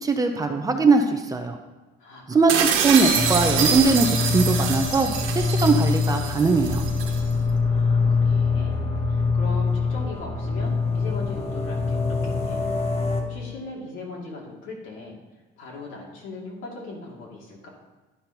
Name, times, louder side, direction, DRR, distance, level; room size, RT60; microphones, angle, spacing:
voice 1, 0.0-1.6 2.3-6.9, right 4 dB, 15° right, 5 dB, 0.5 m, -21 dB
sound 1, 2.5-7.2, right 7 dB, 75° right, 1.2 m, -25 dB
voice 2, 2.6-3.0 7.6-8.8 9.1-12.6 13.2-15.2 15.6-17.7, left 2 dB, 75° left, -2 dB, 2.6 m, -39 dB
sound 2, 3.1-13.2, left 4 dB, 30° left, 0.9 m, -24 dB
11.0 x 5.2 x 4.4 m, 1.2 s
cardioid pair, 165°, 20 cm